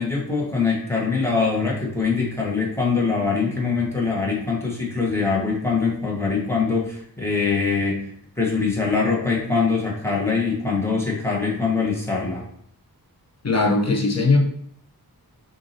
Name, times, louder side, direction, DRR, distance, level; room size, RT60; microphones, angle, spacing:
voice 1, 0.0-8.1 8.4-12.4, left 4 dB, 5° left, -4 dB, 1.4 m, -23 dB
voice 2, 13.4-14.4, left 3 dB, 45° left, 1 dB, 0.9 m, -19 dB
6.4 x 2.7 x 2.8 m, 0.65 s
wide cardioid pair, 80°, 37 cm